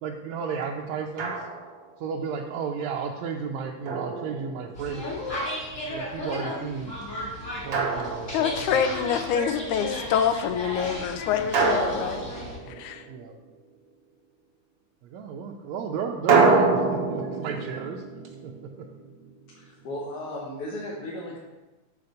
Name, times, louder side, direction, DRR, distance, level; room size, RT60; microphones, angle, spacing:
voice 1, 0.0-1.5 2.0-5.2 5.9-6.9 7.7-9.2 12.7-12.8 13.1-13.3 15.0-18.1 18.4-18.9, right 6 dB, 75° right, 0 dB, 1.8 m, -34 dB
Drum, 1.2-1.9 3.9-4.9 7.7-8.9 11.5-13.2 16.3-19.3, right 4 dB, 60° right, 1.0 m, -26 dB
sound 1, 4.7-12.6, left 1 dB, 30° left, 2.2 m, -34 dB
voice 2, 8.3-12.2 12.7-13.0, left 8 dB, 85° left, 9 dB, 2.0 m, -26 dB
voice 3, 19.5-21.4, left 1 dB, 55° left, -4 dB, 2.1 m, -35 dB
6.9 x 5.2 x 6.4 m, 1.1 s
omnidirectional pair, 3.5 m